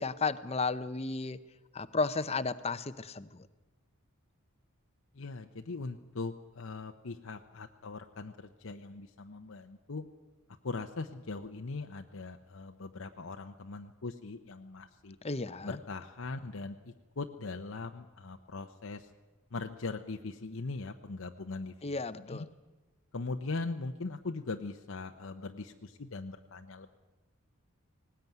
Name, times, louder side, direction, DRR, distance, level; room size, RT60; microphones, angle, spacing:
voice 1, 0.0-1.4 1.7-3.5 15.2-15.8 21.8-22.5, left 4 dB, 30° left, 13 dB, 0.7 m, -33 dB
voice 2, 5.1-10.0 10.6-15.2 15.6-19.1 19.5-21.7 22.2-22.4 23.1-26.9, left 3 dB, 65° left, 5 dB, 0.8 m, -40 dB
19.0 x 18.0 x 9.3 m, 1.2 s
head